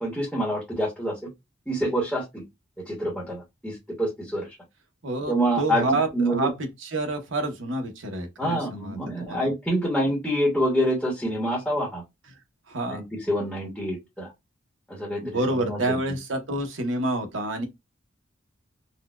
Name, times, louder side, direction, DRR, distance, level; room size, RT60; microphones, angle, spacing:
voice 1, 0.0-1.1 1.7-2.2 2.9-4.5 5.3-6.5 8.4-12.0 12.9-14.3 14.9-15.8, equal, 5° left, 1.0 m, -26 dB
voice 2, 5.0-9.5 12.7-13.0 15.2-17.7, right 2 dB, 75° right, 0.9 m, -28 dB
4.1 x 2.2 x 2.3 m
head